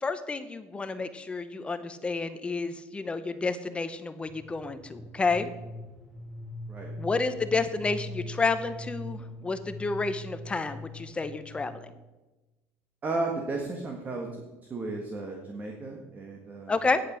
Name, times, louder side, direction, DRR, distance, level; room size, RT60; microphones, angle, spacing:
voice 1, 0.0-5.5 7.0-11.9 16.7-17.0, left 3 dB, 20° left, 11 dB, 0.8 m, -30 dB
sound 1, 4.2-12.0, equal, ahead, 4.1 m, -42 dB
voice 2, 13.0-14.3 14.7-16.7, right 3 dB, 30° right, 2 dB, 1.5 m, -34 dB
9.7 x 8.5 x 6.2 m, 1.1 s
cardioid pair, 120°, 6 cm